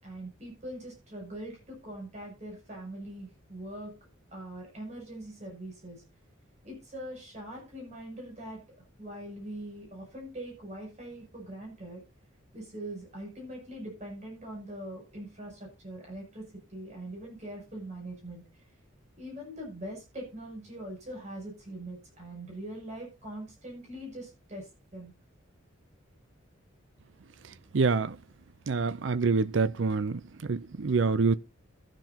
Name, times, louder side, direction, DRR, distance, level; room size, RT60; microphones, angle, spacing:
voice 1, 0.0-3.9 4.3-6.0 6.6-8.6 9.0-12.0 12.5-18.6 19.2-25.1, right 1 dB, 35° right, 7.0 m, -42 dB
voice 2, 27.7-28.1 28.7-30.2 30.5-31.3, right 4 dB, 65° right, 0.5 m, -26 dB
22.0 x 7.5 x 2.9 m
head